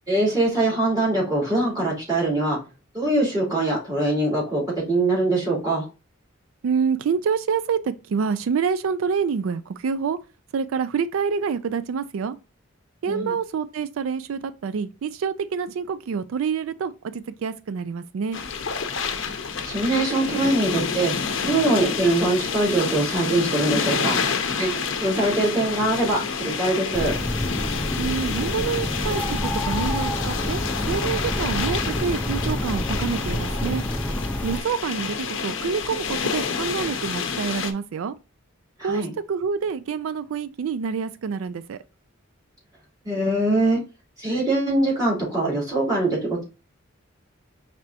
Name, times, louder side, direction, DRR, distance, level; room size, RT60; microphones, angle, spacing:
voice 1, 0.1-2.6 2.9-4.6 4.9-5.9 13.1-13.3 19.7-21.1 21.4-24.2 24.6-24.7 25.0-27.1 38.8-39.1 43.0-43.8 44.2-46.4, right 2 dB, 20° right, 2.8 m, -22 dB
voice 2, 6.6-10.2 10.5-12.4 13.0-18.4 28.0-30.6 30.9-33.8 34.4-38.2 38.8-41.8, right 6 dB, 85° right, 0.4 m, -27 dB
sound 1, 18.3-37.7, left 5 dB, 65° left, 0.6 m, -29 dB
sound 2, 26.9-34.6, left 1 dB, 5° left, 0.4 m, -28 dB
5.0 x 3.4 x 2.8 m
head